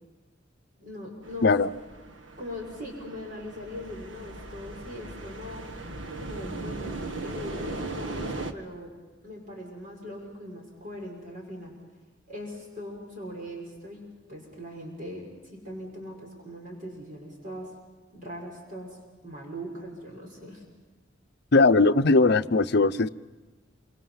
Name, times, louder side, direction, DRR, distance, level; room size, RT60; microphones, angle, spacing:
voice 1, 0.8-1.5 2.4-5.7 6.1-8.9 9.2-11.7 12.3-17.7 18.1-19.0 19.2-20.6, left 1 dB, 45° right, 0 dB, 5.9 m, -40 dB
sound 1, 1.2-8.5, right 2 dB, 85° right, 1.7 m, -38 dB
voice 2, 21.5-23.1, left 3 dB, 60° left, 13 dB, 0.7 m, -19 dB
28.0 x 26.5 x 5.8 m, 1.3 s
head